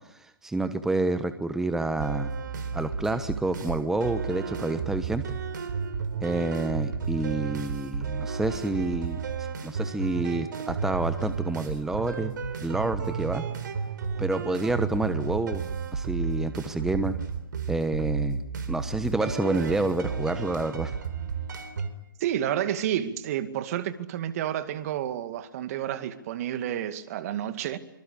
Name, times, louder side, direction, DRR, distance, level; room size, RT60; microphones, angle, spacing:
voice 1, 0.1-2.3 2.7-5.4 6.2-12.3 12.6-13.5 14.2-15.6 15.9-17.2 17.7-20.9, right 2 dB, 5° right, 1.1 m, -28 dB
sound 1, 2.0-21.9, right 5 dB, 60° right, 3.9 m, -32 dB
voice 2, 22.2-27.8, right 11 dB, 45° right, 2.3 m, -30 dB
25.0 x 24.5 x 8.6 m
hypercardioid pair, 130°, 12 cm